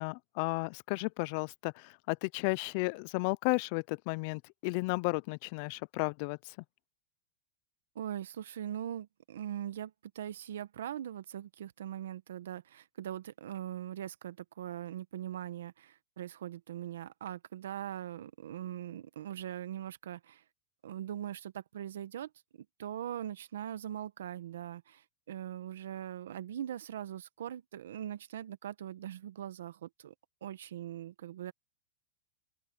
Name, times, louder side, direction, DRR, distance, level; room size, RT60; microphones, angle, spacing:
voice 1, 0.0-6.5, left 29 dB, 55° left, 0.5 m, -33 dB
voice 2, 7.9-20.4 20.8-30.1 30.4-31.5, right 11 dB, 85° right, 1.1 m, -41 dB
open air
hypercardioid pair, 120°, 0 cm